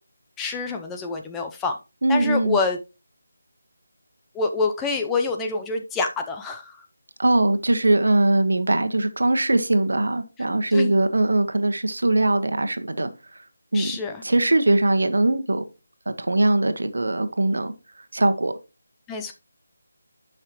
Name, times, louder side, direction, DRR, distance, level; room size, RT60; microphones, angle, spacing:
voice 1, 0.4-1.8 2.1-2.8 4.3-6.8 10.7-10.9 13.7-14.2 19.1-19.3, left 4 dB, 10° left, 0.6 m, -26 dB
voice 2, 2.0-2.6 7.2-13.1 13.7-13.9 14.2-15.6 16.2-17.7 18.1-18.5, right 2 dB, 75° right, 1.2 m, -21 dB
10.5 x 5.7 x 3.0 m
figure-of-eight pair, 165°, 0 cm